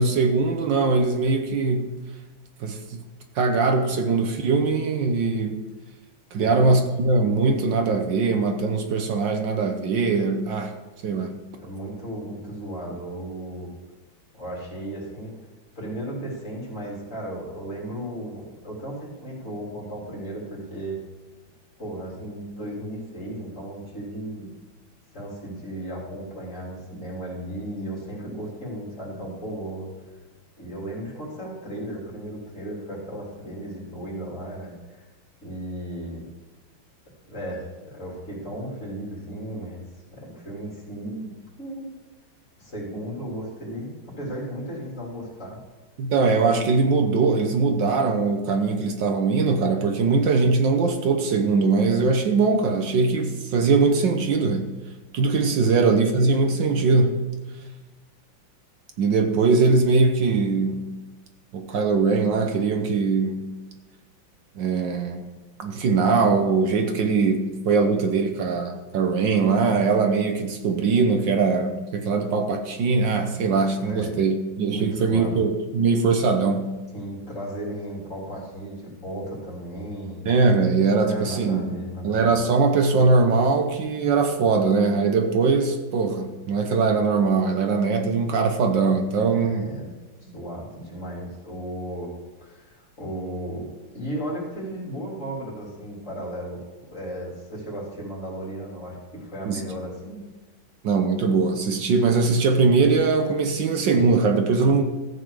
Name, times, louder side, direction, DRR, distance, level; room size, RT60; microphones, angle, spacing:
voice 1, 0.0-1.9 2.6-3.0 3.4-5.6 6.3-10.7 11.0-11.4 46.0-54.7 55.1-57.2 59.0-60.9 61.5-63.5 64.6-65.2 65.6-76.7 80.2-81.7 82.0-89.7 99.4-99.6 100.8-104.8, right 4 dB, 70° right, 5 dB, 1.6 m, -21 dB
voice 2, 11.6-13.7 14.3-15.3 15.8-21.0 21.8-24.5 25.1-29.9 30.6-35.1 35.4-36.3 37.3-39.8 40.1-41.3 41.6-41.9 42.6-45.6 73.8-74.3 74.7-75.4 76.9-80.2 80.9-82.3 89.4-89.9 90.2-92.1 92.4-100.2, right 1 dB, 40° left, -4 dB, 3.6 m, -35 dB
14.0 x 8.3 x 4.9 m, 1.2 s
omnidirectional pair, 2.2 m